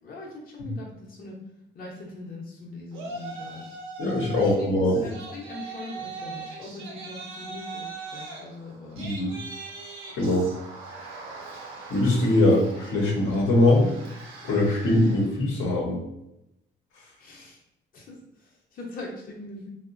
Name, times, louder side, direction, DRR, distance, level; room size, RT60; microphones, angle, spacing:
voice 1, 0.0-1.3 1.7-3.8 4.4-9.3 17.2-17.6 17.9-19.7, left 2 dB, 45° left, -2 dB, 0.7 m, -41 dB
Yell, 2.9-4.6 4.9-15.4, right 4 dB, 90° right, 0.6 m, -40 dB
voice 2, 4.0-5.0 9.0-9.3 10.1-10.5 11.9-13.9 14.4-16.0, left 1 dB, 80° left, -3 dB, 0.7 m, -22 dB
2.8 x 2.1 x 2.4 m, 0.86 s
cardioid pair, 90°, 20 cm